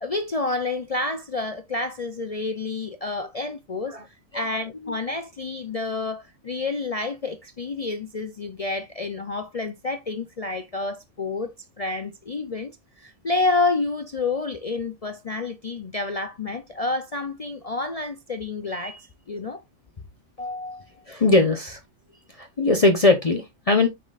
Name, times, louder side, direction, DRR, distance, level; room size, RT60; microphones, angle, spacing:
voice 1, 0.0-4.0 4.3-12.7 13.0-19.6 20.4-20.9, left 3 dB, 50° left, 0.4 m, -29 dB
voice 2, 21.1-21.8 22.4-23.9, left 2 dB, 30° left, 0.8 m, -20 dB
7.2 x 5.8 x 2.4 m
omnidirectional pair, 1.4 m